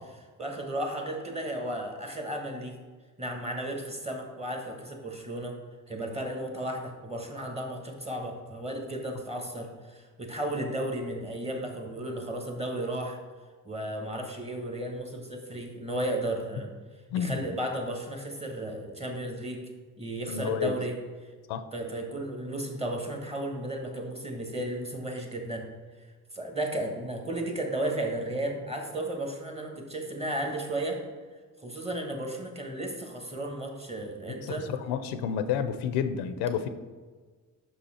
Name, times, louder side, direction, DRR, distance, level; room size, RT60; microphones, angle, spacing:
voice 1, 0.4-2.7 3.2-5.5 5.9-13.2 13.6-16.7 17.1-19.7 20.0-21.0 21.7-25.7 26.0-26.1 26.3-31.0 31.6-34.7, right 1 dB, 15° right, 2 dB, 1.3 m, -34 dB
voice 2, 20.3-20.7 21.5-21.6 34.4-34.5 34.9-36.7, left 8 dB, 85° left, 10 dB, 0.6 m, -29 dB
5.9 x 5.5 x 4.3 m, 1.4 s
cardioid pair, 90°, 39 cm